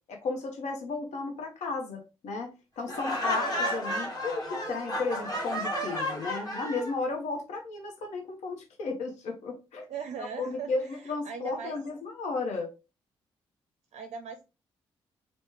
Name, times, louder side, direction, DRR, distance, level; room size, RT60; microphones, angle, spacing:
voice 1, 0.1-9.9 10.2-12.7, left 3 dB, 65° left, 2 dB, 0.7 m, -34 dB
Laughter, 2.9-6.9, equal, 30° left, 1.3 m, -32 dB
voice 2, 9.9-11.8 13.9-14.4, right 6 dB, 55° right, 6 dB, 0.4 m, -39 dB
3.1 x 2.1 x 3.3 m, 0.28 s
hypercardioid pair, 40°, 13 cm